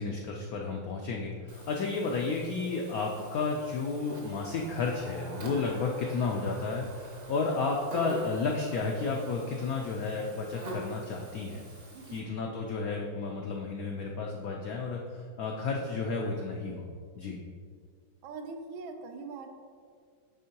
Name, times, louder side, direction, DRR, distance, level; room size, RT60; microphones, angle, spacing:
voice 1, 0.0-11.6 12.1-16.9 17.2-17.4, left 4 dB, 85° left, 0 dB, 0.7 m, -32 dB
Buzz, 1.5-12.2, right 1 dB, 45° right, 0.8 m, -46 dB
Race car auto racing, 4.0-13.1, right 3 dB, 70° right, 1.0 m, -51 dB
voice 2, 11.9-12.3 18.2-19.5, right 4 dB, 85° right, 5 dB, 1.4 m, -42 dB
9.7 x 3.7 x 2.9 m, 2.1 s
omnidirectional pair, 2.1 m